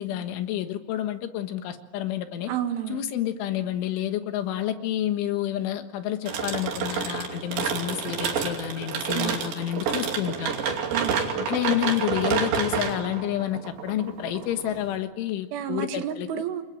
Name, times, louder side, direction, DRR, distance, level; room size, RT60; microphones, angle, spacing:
voice 1, 0.0-2.5 2.9-10.6 11.5-16.3, left 12 dB, 85° left, 8 dB, 4.0 m, -29 dB
voice 2, 2.5-3.0 9.2-9.4 10.9-11.3 15.5-16.6, right 10 dB, 90° right, 7 dB, 4.3 m, -30 dB
sound 1, 6.3-14.9, right 6 dB, 70° right, 4.9 m, -29 dB
27.5 x 23.0 x 9.2 m, 1.0 s
omnidirectional pair, 5.4 m